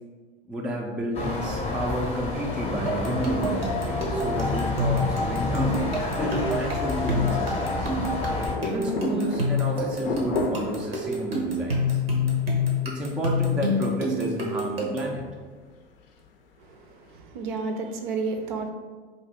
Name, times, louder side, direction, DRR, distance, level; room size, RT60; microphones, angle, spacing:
voice 1, 0.5-7.9 8.6-12.0 12.8-15.3, equal, 5° right, -1 dB, 0.3 m, -31 dB
sound 1, 1.1-8.5, left 3 dB, 20° left, 0.7 m, -29 dB
sound 2, 2.9-15.2, left 2 dB, 85° right, 0.8 m, -28 dB
sound 3, 8.3-13.7 14.0-14.1 14.7-14.8 15.6-16.2 16.5-16.6 17.2-17.3, left 3 dB, 70° left, 0.5 m, -33 dB
voice 2, 16.7-18.7, right 4 dB, 60° right, 5 dB, 0.5 m, -31 dB
2.7 x 2.5 x 4.1 m, 1.4 s
figure-of-eight pair, 85°, 29 cm